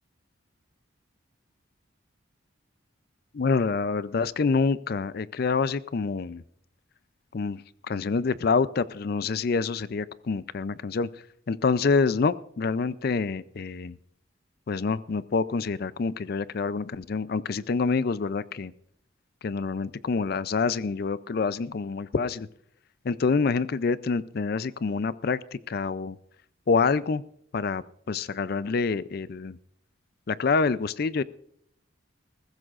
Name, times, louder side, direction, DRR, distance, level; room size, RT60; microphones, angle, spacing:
voice 1, 3.3-6.4 7.3-11.1 11.5-14.0 14.7-18.7 19.4-22.5 23.0-26.2 26.7-27.2 27.5-27.8 28.1-29.6 30.3-31.2, left 4 dB, 50° left, 17 dB, 0.4 m, -27 dB
20.5 x 15.5 x 2.5 m, 0.71 s
head